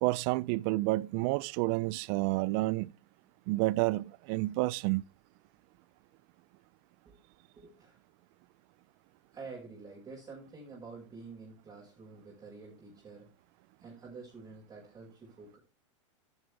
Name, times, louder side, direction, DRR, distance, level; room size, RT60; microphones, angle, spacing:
voice 1, 0.0-2.9 3.5-5.0, right 21 dB, 45° right, 0.5 m, -29 dB
voice 2, 7.6-8.0 9.3-13.3 13.8-15.6, right 4 dB, 20° right, 5.6 m, -48 dB
11.5 x 9.6 x 3.4 m
hypercardioid pair, 125°, 17 cm